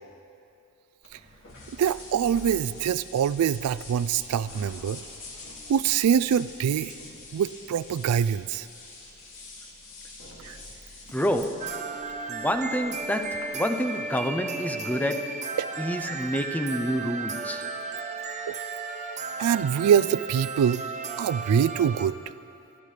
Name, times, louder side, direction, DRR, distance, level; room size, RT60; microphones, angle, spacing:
sound 1, 1.0-13.5, left 2 dB, 65° left, 2.5 m, -45 dB
voice 1, 1.7-5.0 5.7-6.9 7.3-8.7 10.4-10.6 15.6-15.7 18.5-18.6 19.4-20.8 21.2-22.2, right 8 dB, 75° right, 16 dB, 0.3 m, -24 dB
voice 2, 11.1-11.8 12.3-15.4 15.8-17.7, equal, 5° left, 7 dB, 0.5 m, -28 dB
sound 2, 11.6-22.1, right 4 dB, 30° right, 0.8 m, -34 dB
25.5 x 12.0 x 3.3 m, 2.6 s
head